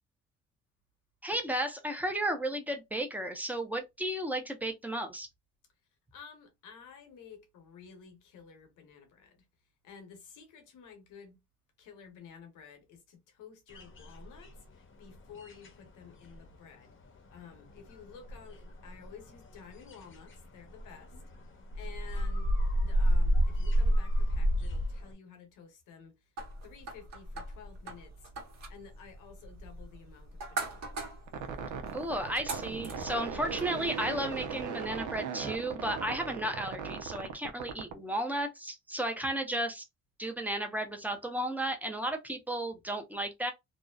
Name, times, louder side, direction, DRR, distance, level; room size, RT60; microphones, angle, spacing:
voice 1, 1.2-5.3 31.9-39.8 40.2-43.5, right 1 dB, 5° right, 0.6 m, -34 dB
voice 2, 6.1-9.5 9.8-11.4 11.8-16.9 17.3-21.2 21.7-26.2 26.6-28.3 28.7-31.0, left 6 dB, 85° left, 0.9 m, -52 dB
sound 1, 13.7-14.8 15.1-25.1, equal, 40° left, 0.7 m, -30 dB
sound 2, 26.4-33.7, right 3 dB, 60° right, 1.2 m, -43 dB
sound 3, 31.3-37.9, right 6 dB, 80° right, 0.6 m, -38 dB
2.6 x 2.0 x 2.3 m
cardioid pair, 90°, 30 cm